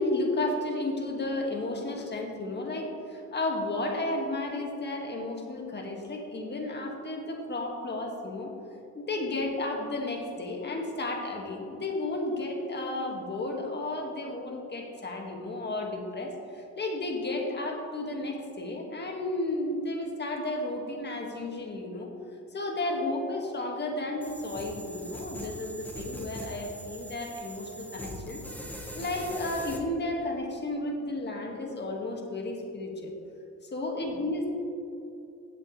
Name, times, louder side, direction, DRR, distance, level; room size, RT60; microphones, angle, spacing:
voice 1, 0.0-8.5 8.9-22.1 22.5-28.4 28.7-33.1 33.6-34.6, left 2 dB, 35° left, 1 dB, 2.0 m, -33 dB
sound 1, 24.2-29.8, equal, 5° left, 1.5 m, -41 dB
16.5 x 7.4 x 3.3 m, 2.7 s
cardioid pair, 90°, 30 cm